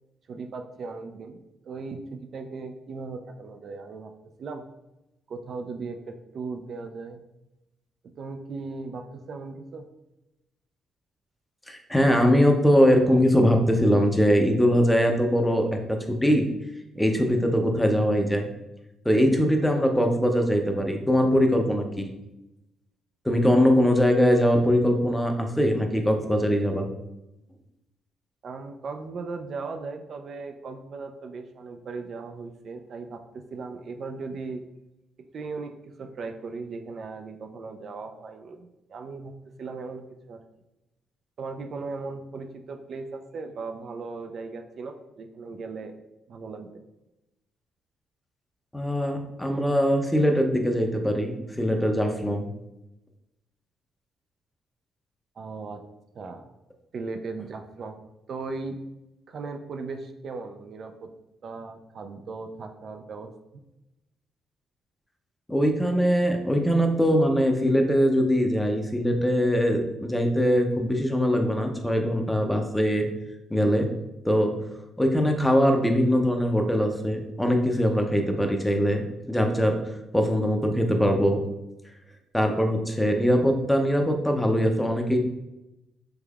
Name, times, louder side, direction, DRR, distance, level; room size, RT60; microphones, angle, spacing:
voice 1, 0.3-4.1 4.4-4.6 5.3-7.2 8.2-9.9 28.4-34.6 35.2-40.4 41.4-45.9 46.3-46.8 55.4-55.8 56.1-56.5 56.9-58.0 58.3-58.8 59.3-61.1 61.4-63.6, right 4 dB, 55° right, 5 dB, 0.3 m, -37 dB
voice 2, 11.7-16.5 16.9-18.5 19.0-22.1 23.2-26.9 48.7-52.5 65.5-73.1 73.5-73.9 74.2-74.5 75.0-79.8 80.1-81.4 82.3-85.2, equal, 5° left, 4 dB, 0.5 m, -22 dB
3.4 x 3.2 x 2.3 m, 0.92 s
cardioid pair, 90°, 0 cm